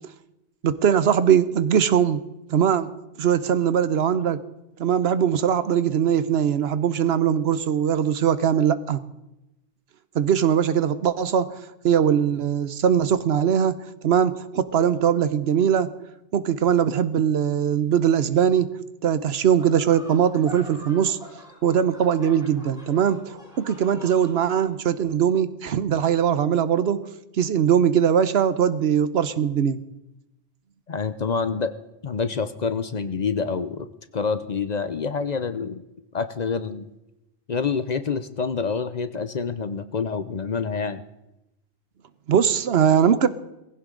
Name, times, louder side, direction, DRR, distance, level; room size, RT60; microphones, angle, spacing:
voice 1, 0.6-2.2 2.5-2.9 3.2-4.4 4.8-9.0 10.1-11.5 11.8-13.7 14.0-15.9 16.3-18.7 19.0-21.2 21.6-27.0 27.4-29.8 42.3-43.3, right 8 dB, 70° right, 14 dB, 1.0 m, -21 dB
sound 1, 19.6-24.7, equal, 5° right, 5.7 m, -44 dB
voice 2, 30.9-31.7 32.0-33.9 34.1-35.8 36.1-36.9 37.5-41.0, left 5 dB, 45° left, 11 dB, 0.7 m, -27 dB
19.0 x 16.0 x 3.8 m, 0.92 s
omnidirectional pair, 1.1 m